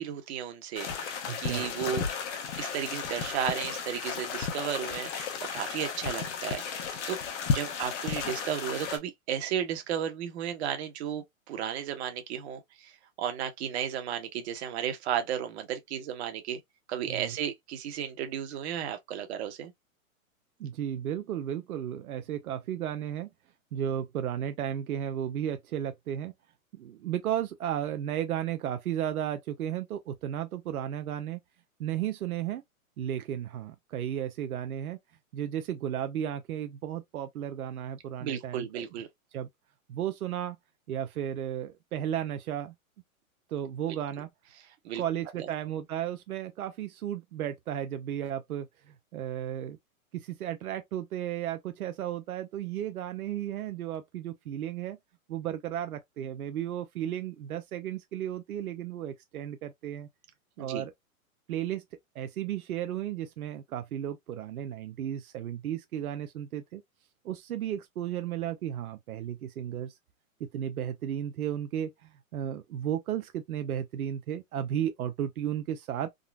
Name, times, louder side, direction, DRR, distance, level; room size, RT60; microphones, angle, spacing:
voice 1, 0.0-2.0 2.6-7.2 7.5-12.9 13.2-16.6 16.9-19.7 38.2-39.1 44.8-45.0 45.4-45.5 60.6-60.9, right 9 dB, 50° right, 1.0 m, -34 dB
sound 1, 0.8-9.0, left 6 dB, 55° left, 0.9 m, -34 dB
voice 2, 1.3-2.0 17.1-17.3 20.6-23.3 23.7-26.3 26.7-31.4 31.8-32.6 33.0-35.0 35.3-38.8 39.3-39.5 39.9-40.6 40.9-42.7 43.5-44.3 45.0-49.8 50.1-55.0 55.3-60.1 60.6-60.9 61.5-61.8 62.2-66.8 67.2-69.9 70.4-76.3, right 10 dB, 85° right, 0.6 m, -34 dB
3.7 x 2.0 x 2.2 m
hypercardioid pair, 135°, 42 cm